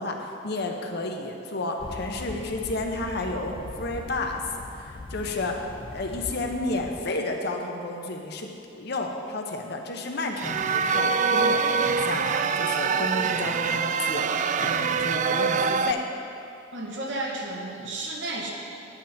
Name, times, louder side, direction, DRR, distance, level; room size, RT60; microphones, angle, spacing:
voice 1, 0.0-4.4 4.7-14.3 14.6-16.0, left 2 dB, 60° left, 2 dB, 0.9 m, -31 dB
sound 1, 1.8-7.0, left 2 dB, 25° left, 0.4 m, -40 dB
sound 2, 10.4-15.9, right 5 dB, 40° right, 0.3 m, -24 dB
voice 2, 16.7-18.5, right 2 dB, 70° right, -1 dB, 1.4 m, -32 dB
10.5 x 8.3 x 4.3 m, 2.7 s
head